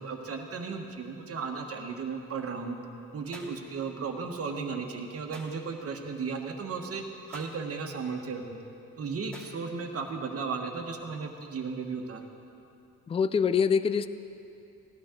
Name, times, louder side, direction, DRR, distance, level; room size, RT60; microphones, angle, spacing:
voice 1, 0.0-2.8 3.1-8.6 9.0-12.3, right 5 dB, 50° right, 3 dB, 1.4 m, -35 dB
sound 1, 3.3-3.6 5.3-5.6 7.3-7.6 9.3-9.6, right 1 dB, 5° left, 2.6 m, -47 dB
voice 2, 13.1-14.1, left 6 dB, 20° left, 13 dB, 0.3 m, -24 dB
16.5 x 11.5 x 3.8 m, 2.8 s
cardioid pair, 90°, 30 cm